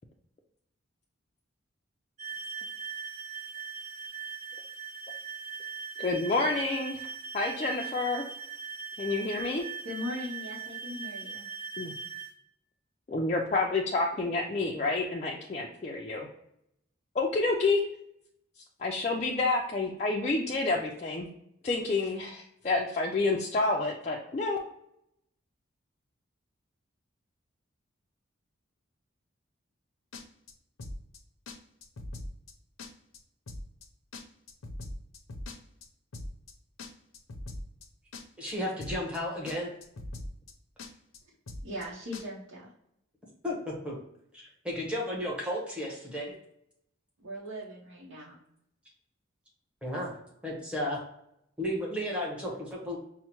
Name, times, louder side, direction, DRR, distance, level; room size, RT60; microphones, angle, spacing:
sound 1, 2.2-12.3, right 6 dB, 35° right, 0.6 m, -40 dB
voice 1, 6.0-7.0 7.3-8.2 9.0-9.6 11.8-11.9 13.1-16.3 17.2-17.8 18.8-21.3 21.6-24.6, left 3 dB, 35° left, -1 dB, 0.3 m, -29 dB
voice 2, 9.8-11.5 41.2-41.3 41.6-42.7 47.2-48.4, left 1 dB, 80° right, -6 dB, 0.8 m, -39 dB
sound 2, 30.1-30.5 30.8-31.2 31.5-31.6 31.8-32.5 32.8-33.2 33.5-33.9 34.1-35.9 36.1-36.5 36.8-37.9 38.1-38.5 38.8-39.2 39.5-39.6 39.8-40.5 40.8-41.2 41.5-41.9 42.1-42.2, left 1 dB, 85° left, 0.6 m, -41 dB
voice 3, 38.4-39.7 43.4-44.0 44.3-46.3 49.8-50.1 50.4-51.0 51.6-53.0, left 1 dB, 5° right, -4 dB, 0.9 m, -33 dB
5.5 x 2.1 x 2.9 m, 0.76 s
head